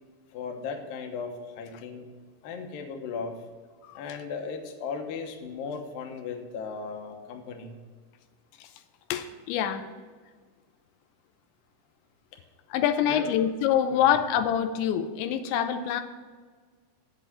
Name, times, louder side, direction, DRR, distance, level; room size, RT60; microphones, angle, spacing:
voice 1, 0.3-2.1 2.4-3.4 4.0-7.8 13.0-13.3 13.9-14.0, left 5 dB, 70° left, 3 dB, 2.4 m, -36 dB
voice 2, 9.1-9.9 12.7-16.0, left 9 dB, 85° left, 8 dB, 3.0 m, -25 dB
8.6 x 8.1 x 6.0 m, 1.5 s
omnidirectional pair, 5.1 m